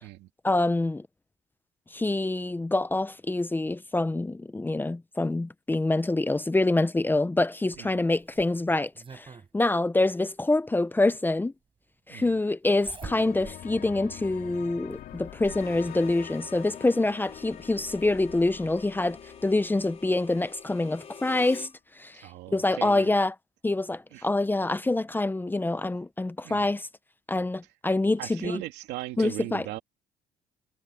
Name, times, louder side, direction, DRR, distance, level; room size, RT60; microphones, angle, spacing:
voice 1, 0.4-1.0 1.9-9.3 9.5-11.5 12.1-21.7 22.0-22.2 22.5-23.3 23.6-26.9 27.3-28.6 29.2-29.7, left 2 dB, 10° left, 0.7 m, -26 dB
Zipper (clothing), 7.7-9.5 10.9-11.0 12.6-13.6 14.1-14.2 14.9-15.7 16.9-17.0 17.4-17.5, right 5 dB, 30° right, 7.0 m, -46 dB
sound 1, 13.0-20.6, left 11 dB, 65° left, 2.4 m, -44 dB
Harmonica, 15.4-21.7, left 6 dB, 40° left, 3.3 m, -48 dB
voice 2, 22.2-23.1 24.1-24.3 26.4-26.7 28.2-29.8, right 16 dB, 85° right, 2.6 m, -38 dB
cardioid pair, 110°, 17 cm